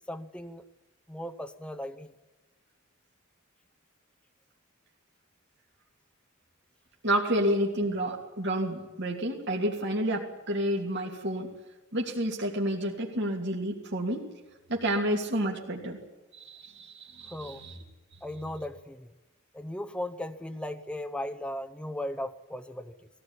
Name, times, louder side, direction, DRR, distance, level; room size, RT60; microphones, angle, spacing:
voice 1, 0.1-0.6 1.1-2.1 17.3-17.6 18.2-19.1 19.5-23.1, left 1 dB, 5° left, 6 dB, 0.7 m, -37 dB
voice 2, 7.0-11.5 11.9-14.3 14.7-16.0 16.3-17.8, right 1 dB, 55° right, -1 dB, 2.6 m, -30 dB
20.0 x 16.5 x 9.9 m, 1.1 s
head